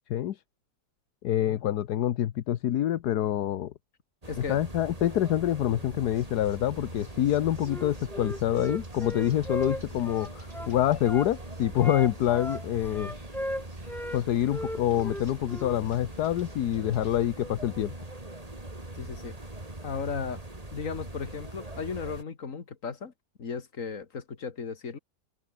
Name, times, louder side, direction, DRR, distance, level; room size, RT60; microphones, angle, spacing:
voice 1, 1.2-3.7 4.5-13.1 14.1-17.9, left 12 dB, 75° left, 1.4 m, -26 dB
sound 1, 4.2-22.2, right 2 dB, 20° right, 3.3 m, -42 dB
voice 2, 4.3-4.6 11.8-11.9 19.0-19.4 19.8-20.4 20.7-23.1 23.4-25.0, left 5 dB, 50° left, 2.4 m, -36 dB
sound 2, 6.1-17.3, right 2 dB, 45° right, 6.6 m, -58 dB
Wind instrument woodwind instrument, 7.6-11.3 11.8-14.2 14.5-15.8, equal, ahead, 0.4 m, -36 dB
omnidirectional pair, 1.8 m